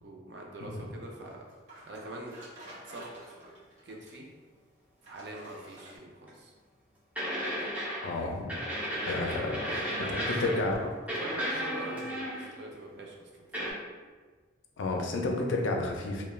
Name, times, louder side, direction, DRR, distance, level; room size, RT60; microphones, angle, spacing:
voice 1, 0.0-1.4 1.9-2.4 2.9-3.4 3.8-4.3 5.0-6.5 9.2-13.7, right 1 dB, 60° right, -1 dB, 0.5 m, -44 dB
sound 1, 1.2-4.3 5.0-6.0, right 1 dB, 40° right, 0.9 m, -50 dB
sound 2, 6.3-6.4 7.2-8.2 8.5-10.7 11.1-12.6 13.5-13.7, equal, 10° right, 0.7 m, -34 dB
voice 2, 8.0-8.5 9.0-9.8 10.1-10.8 14.8-16.2, left 2 dB, 80° left, 1 dB, 0.4 m, -31 dB
3.1 x 2.1 x 2.2 m, 1.4 s
head